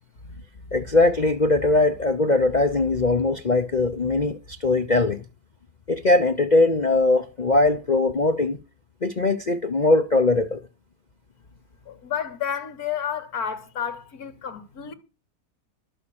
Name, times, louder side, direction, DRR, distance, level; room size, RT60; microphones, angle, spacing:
voice 1, 0.7-5.2 5.9-8.6 9.0-10.6, left 2 dB, 35° left, 0.7 m, -21 dB
voice 2, 11.9-14.9, left 8 dB, 65° left, 2.2 m, -31 dB
12.5 x 7.0 x 8.6 m
omnidirectional pair, 1.8 m